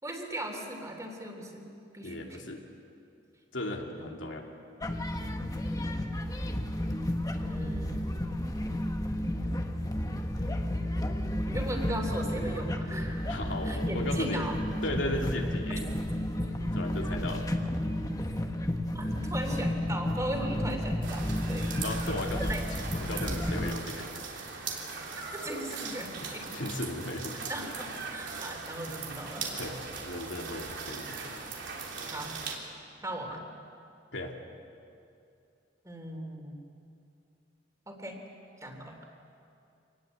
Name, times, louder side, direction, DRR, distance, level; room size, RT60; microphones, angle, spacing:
voice 1, 0.0-2.4 4.0-4.1 7.3-8.0 11.5-13.4 13.6-14.5 18.9-21.7 22.0-22.1 22.5-22.6 25.3-26.7 27.5-29.5 32.1-32.4 33.0-33.5 35.8-36.6 37.9-38.2 38.6-39.1, right 1 dB, 20° right, 2 dB, 3.4 m, -38 dB
voice 2, 2.0-2.7 3.5-4.5 13.3-14.5 14.8-15.9 16.6-17.4 21.8-24.2 26.2-27.3 29.5-29.8 30.0-31.2 34.1-34.3, left 1 dB, 85° left, 1 dB, 2.8 m, -36 dB
sound 1, 4.8-23.7, left 1 dB, 20° left, 1.4 m, -32 dB
sound 2, 21.0-32.6, right 4 dB, 75° right, 3.5 m, -39 dB
26.0 x 20.0 x 8.3 m, 2.5 s
head